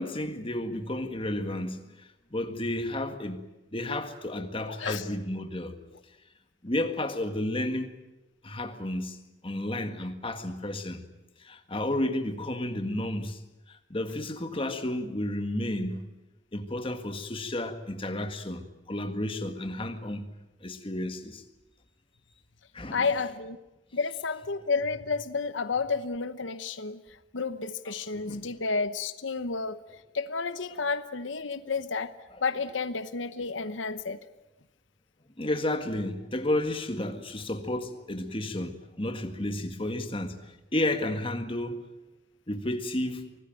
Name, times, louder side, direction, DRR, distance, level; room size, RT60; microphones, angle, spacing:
voice 1, 0.0-3.4 3.7-5.8 6.6-7.9 8.4-9.2 9.4-11.0 11.4-13.4 13.7-16.1 16.5-20.3 20.6-21.4 22.7-23.1 27.9-28.0 28.3-28.4 32.3-32.4 35.4-41.8 42.5-43.3, left 1 dB, 30° left, 1.8 m, -32 dB
voice 2, 4.7-5.1 22.9-23.6 23.9-27.0 27.3-29.8 30.1-32.1 32.4-34.2, left 4 dB, 90° left, 1.0 m, -31 dB
25.0 x 19.5 x 9.1 m
head